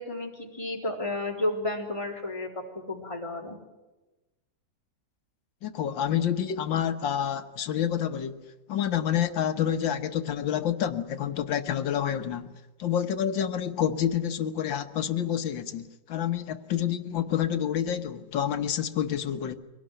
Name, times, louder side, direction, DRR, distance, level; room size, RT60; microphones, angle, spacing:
voice 1, 0.0-3.6, left 2 dB, 15° left, 3.8 m, -32 dB
voice 2, 5.6-8.4 8.7-19.6, left 9 dB, 90° left, 1.9 m, -28 dB
24.0 x 18.0 x 9.0 m
omnidirectional pair, 2.0 m